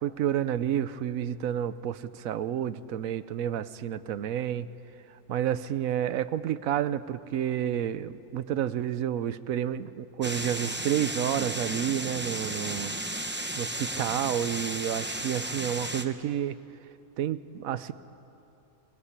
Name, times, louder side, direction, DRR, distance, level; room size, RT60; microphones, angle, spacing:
voice 1, 0.0-4.7 5.3-13.0 13.6-16.6 17.2-17.9, right 10 dB, 70° right, 14 dB, 1.1 m, -30 dB
sound 1, 10.2-16.0, right 1 dB, 10° right, 0.7 m, -34 dB
23.0 x 20.5 x 8.2 m, 2.8 s
omnidirectional pair, 1.6 m